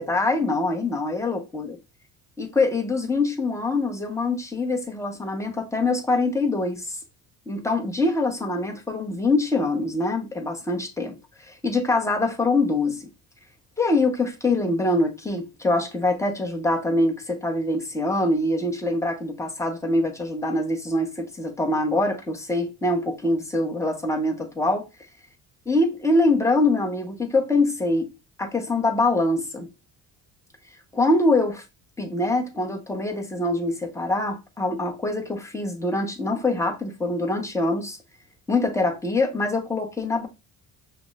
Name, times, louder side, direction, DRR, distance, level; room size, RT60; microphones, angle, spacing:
voice 1, 0.0-1.8 2.4-7.0 7.5-11.1 11.5-13.1 13.8-24.8 25.7-28.1 28.4-29.7 30.9-31.6 32.0-38.0 38.5-40.3, left 2 dB, 5° left, 1.0 m, -24 dB
5.7 x 2.2 x 2.4 m
supercardioid pair, 75°, 41 cm